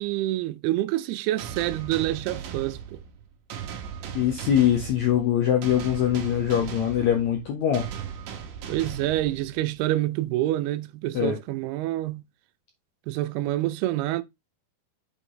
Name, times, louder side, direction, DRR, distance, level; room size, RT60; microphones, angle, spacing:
voice 1, 0.0-3.0 8.7-12.2 13.1-14.2, right 15 dB, 85° right, 2.5 m, -27 dB
sound 1, 1.4-9.8, right 8 dB, 65° right, 2.4 m, -38 dB
voice 2, 4.1-7.9 11.1-11.4, left 10 dB, 75° left, 1.6 m, -23 dB
8.0 x 4.3 x 3.7 m
omnidirectional pair, 4.5 m